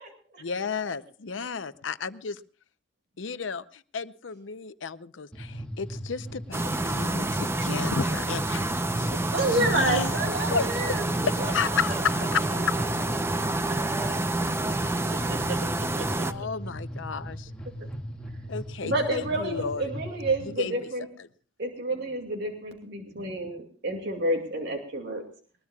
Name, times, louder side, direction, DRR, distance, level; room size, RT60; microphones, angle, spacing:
voice 1, 0.4-2.4 3.2-9.2 9.4-10.1 10.5-12.4 16.2-17.5 18.5-19.9 20.4-20.9 21.2-21.3, left 5 dB, 85° left, 14 dB, 0.7 m, -32 dB
sound 1, 5.3-20.5, equal, 5° left, 1.9 m, -38 dB
sound 2, 6.5-16.3, right 2 dB, 15° right, 0.7 m, -28 dB
voice 2, 9.1-11.1 11.4-11.5 14.7-15.7 16.0-16.5 18.8-21.1 21.6-25.2, right 1 dB, 65° right, 2 dB, 2.4 m, -30 dB
voice 3, 11.9-14.2, right 1 dB, 45° right, 4 dB, 6.4 m, -43 dB
21.0 x 20.5 x 2.4 m, 0.43 s
head